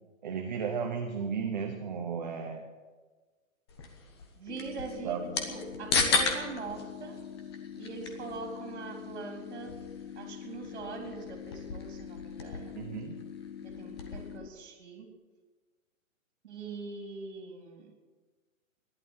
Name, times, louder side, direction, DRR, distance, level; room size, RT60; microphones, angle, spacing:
voice 1, 0.2-2.7 5.0-5.4 12.7-13.2, right 6 dB, 35° right, 3 dB, 1.1 m, -34 dB
sound 1, 3.7-14.4, left 4 dB, 20° left, 0.9 m, -36 dB
voice 2, 4.4-7.2 7.8-9.8 10.2-12.8 13.6-15.1 16.4-17.9, right 4 dB, 50° right, 4 dB, 3.5 m, -42 dB
sound 2, 4.5-14.5, left 9 dB, 75° left, 0.9 m, -44 dB
15.0 x 11.0 x 7.4 m, 1.4 s
hypercardioid pair, 175°, 41 cm